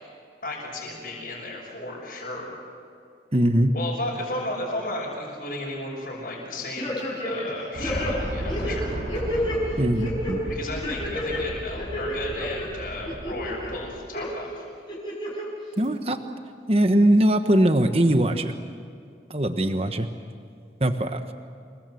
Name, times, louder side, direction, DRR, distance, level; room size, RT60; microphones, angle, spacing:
voice 1, 0.4-2.6 3.7-6.9 7.2-8.9 10.5-14.7, left 1 dB, 50° left, -4 dB, 6.3 m, -34 dB
voice 2, 3.3-3.7 9.8-10.5 15.8-16.2 16.7-18.5 19.3-20.1 20.8-21.2, right 1 dB, 35° right, 8 dB, 1.2 m, -21 dB
sound 1, 6.8-7.5 7.8-9.6 10.0-10.3 10.8-11.4 11.8-12.6 13.1-13.7 14.1-14.3 14.9-15.4 15.8-15.9, equal, 25° left, 6.4 m, -30 dB
sound 2, 7.7-14.0, equal, 85° right, 7.7 m, -34 dB
27.5 x 22.0 x 7.8 m, 2.3 s
head